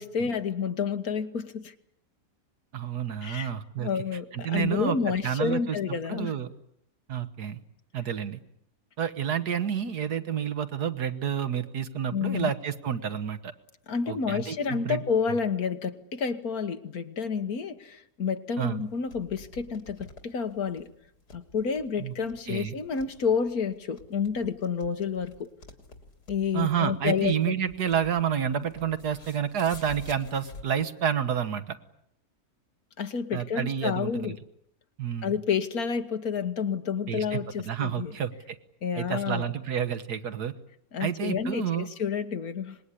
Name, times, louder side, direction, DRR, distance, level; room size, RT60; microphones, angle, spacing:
voice 1, 0.0-1.7 3.2-6.3 12.1-12.5 13.9-20.9 21.3-25.5 26.3-27.5 33.0-34.4 35.2-38.2 38.8-39.5 40.9-42.8, left 6 dB, 70° left, 9 dB, 1.9 m, -29 dB
voice 2, 2.7-3.9 4.3-5.0 5.2-6.5 7.1-7.6 7.9-8.4 9.0-13.5 14.1-15.0 18.6-18.8 22.0-22.1 22.5-22.8 26.5-31.8 33.3-34.3 35.0-35.4 37.1-38.3 39.0-40.5 41.0-41.9, right 8 dB, 80° right, 10 dB, 2.0 m, -29 dB
sound 1, 18.6-30.8, left 2 dB, 85° left, 3.5 m, -50 dB
26.0 x 20.5 x 10.0 m, 0.74 s
omnidirectional pair, 1.7 m